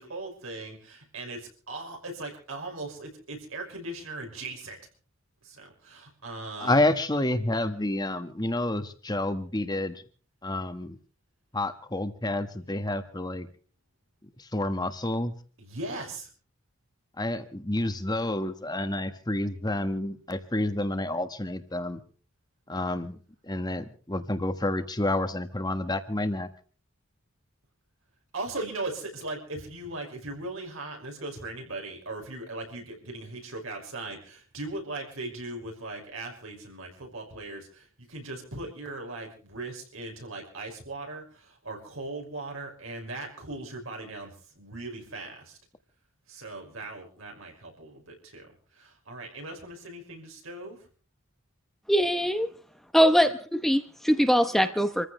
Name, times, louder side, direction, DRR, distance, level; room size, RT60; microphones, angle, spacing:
voice 1, 0.0-4.8 5.4-6.8 15.6-16.3 28.3-45.6 46.3-48.5 48.8-50.8 53.2-53.3, right 2 dB, 80° right, 5.8 m, -39 dB
voice 2, 6.6-10.0 10.4-11.0 11.5-13.5 14.4-15.3 17.2-22.0 22.7-23.2 23.4-26.5, left 1 dB, 20° left, 1.5 m, -29 dB
voice 3, 51.9-52.5 52.9-53.3 53.6-55.1, equal, ahead, 0.8 m, -22 dB
27.5 x 15.0 x 3.3 m
head